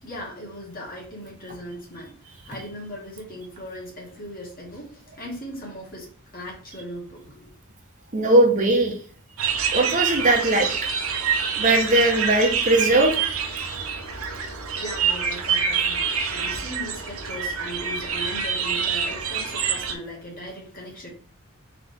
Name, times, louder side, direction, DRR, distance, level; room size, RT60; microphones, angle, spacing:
voice 1, 0.0-7.5 14.8-21.1, equal, 45° left, 1.7 m, -38 dB
voice 2, 8.1-8.9 9.7-10.9 11.6-13.2, right 2 dB, 40° right, 0.7 m, -19 dB
sound 1, 9.4-20.0, right 6 dB, 85° right, 0.7 m, -26 dB
4.0 x 3.0 x 3.4 m
head